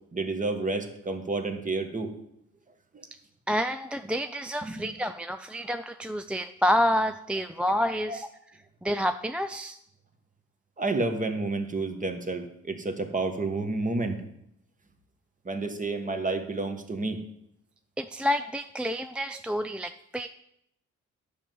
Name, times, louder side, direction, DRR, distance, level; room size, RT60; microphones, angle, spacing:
voice 1, 0.1-2.1 2.9-3.0 4.6-4.8 8.1-8.2 10.8-14.2 15.4-17.3, right 3 dB, 25° right, 6 dB, 1.5 m, -30 dB
voice 2, 3.5-8.3 8.8-9.8 18.0-20.3, equal, 5° right, 9 dB, 0.3 m, -28 dB
10.5 x 5.3 x 7.8 m, 0.77 s
cardioid pair, 90°, 30 cm